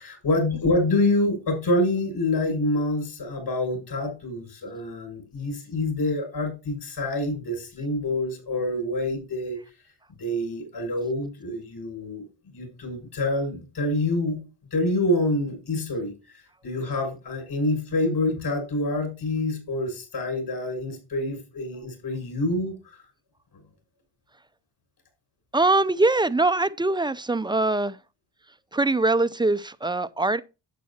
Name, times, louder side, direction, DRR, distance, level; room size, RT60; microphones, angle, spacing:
voice 1, 0.0-9.6 10.2-14.4 14.7-22.8, left 1 dB, 60° left, 6.7 m, -27 dB
voice 2, 25.5-28.0 28.7-30.4, right 2 dB, 10° right, 0.5 m, -22 dB
11.5 x 8.4 x 2.8 m
cardioid pair, 80°, 44 cm